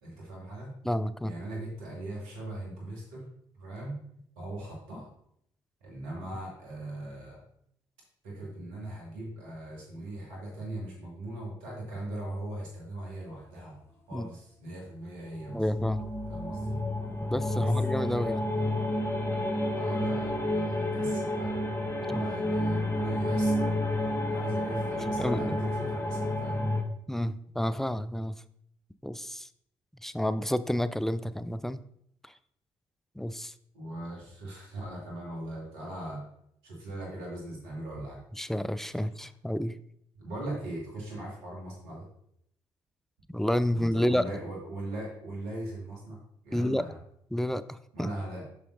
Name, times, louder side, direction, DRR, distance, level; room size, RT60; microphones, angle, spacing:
voice 1, 0.0-0.7 1.2-3.3 3.6-4.0 4.4-5.1 5.8-7.4 8.2-13.8 14.1-15.6 16.3-16.8 17.5-17.7 19.7-21.6 22.0-26.7 33.7-36.2 36.6-38.2 38.9-39.0 40.2-42.1 43.7-47.0 47.9-48.4, right 1 dB, 80° right, -2 dB, 2.0 m, -39 dB
voice 2, 0.8-1.3 14.1-14.3 15.5-16.1 17.3-18.5 22.1-22.3 25.2-25.6 27.1-28.3 29.0-29.5 30.0-31.8 33.2-33.5 38.4-39.7 43.3-44.2 46.5-46.8 47.3-48.1, equal, 5° left, 14 dB, 0.4 m, -30 dB
sound 1, 15.4-26.8, left 1 dB, 20° left, 1.1 m, -30 dB
8.3 x 5.7 x 2.6 m, 0.72 s
hypercardioid pair, 45°, 13 cm